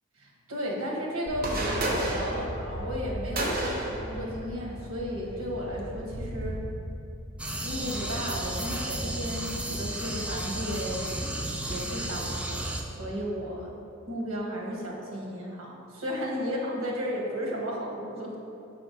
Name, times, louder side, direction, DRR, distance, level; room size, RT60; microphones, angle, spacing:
voice 1, 0.2-6.5 7.6-11.1 11.7-12.6 13.0-13.7 14.1-18.3, equal, 85° right, -2 dB, 1.3 m, -34 dB
sound 1, 1.3-6.6, right 1 dB, 45° right, 0.8 m, -33 dB
sound 2, 7.4-12.8, right 1 dB, 5° right, 0.3 m, -33 dB
5.8 x 3.5 x 5.1 m, 2.7 s
head